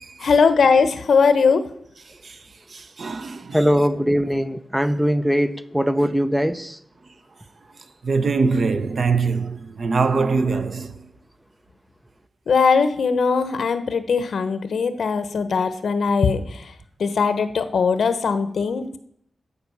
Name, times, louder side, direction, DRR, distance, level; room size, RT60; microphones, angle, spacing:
voice 1, 0.2-1.7 12.5-16.7 17.0-19.0, left 5 dB, 70° left, 1.1 m, -20 dB
voice 2, 2.7-3.7 6.0-6.1 8.0-11.0, right 4 dB, 50° right, 0.8 m, -23 dB
voice 3, 3.5-6.8, equal, 5° right, 0.6 m, -21 dB
13.0 x 5.5 x 8.5 m
wide cardioid pair, 155°, 0 cm